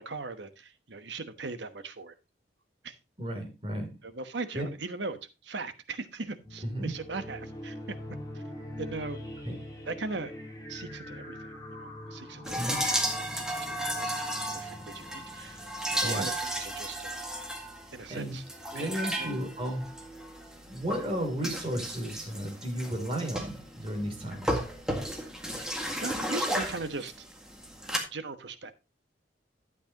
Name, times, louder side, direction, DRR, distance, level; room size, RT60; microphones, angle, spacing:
voice 1, 0.0-2.1 2.8-3.0 4.0-7.9 8.3-8.4 8.8-9.2 9.9-10.3 10.7-15.6 15.9-17.2 17.9-18.4 18.7-19.3 25.6-27.3 27.9-28.7, right 3 dB, 75° right, 1.1 m, -39 dB
voice 2, 3.2-3.9 4.5-4.7 6.6-6.9 9.4-9.5 12.5-12.8 16.0-16.3 18.1-18.4 18.7-19.9 20.7-24.6, right 1 dB, 30° right, 3.1 m, -33 dB
sound 1, 6.4-16.6, left 1 dB, 20° left, 3.1 m, -43 dB
sound 2, 12.4-28.0, equal, 5° right, 1.8 m, -34 dB
12.0 x 8.2 x 2.9 m
head